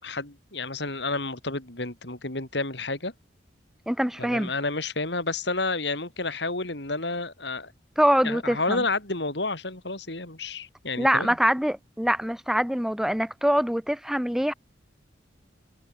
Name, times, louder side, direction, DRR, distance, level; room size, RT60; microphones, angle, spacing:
voice 1, 0.0-3.1 4.2-7.7 8.2-11.4, left 3 dB, 65° left, 3.8 m, -30 dB
voice 2, 3.9-4.5 8.0-8.8 11.0-14.5, equal, ahead, 0.6 m, -24 dB
head